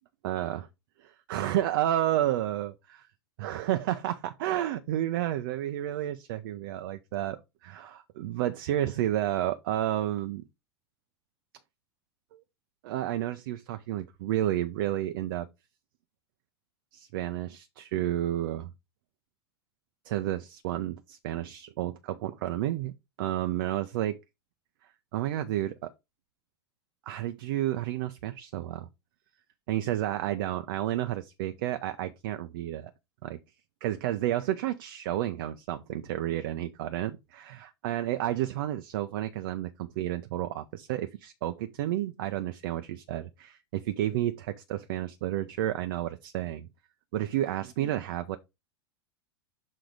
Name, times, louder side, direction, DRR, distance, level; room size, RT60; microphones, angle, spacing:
voice 1, 0.2-0.7 1.0-3.1 3.4-10.4 12.3-12.4 12.8-15.5 16.9-18.7 20.0-22.9 23.2-24.2 25.1-25.9 27.1-28.9 29.7-32.9 33.2-33.4 33.8-46.7 47.1-48.4, right 13 dB, 55° right, 0.6 m, -31 dB
6.3 x 3.8 x 4.8 m
figure-of-eight pair, 85°, 14 cm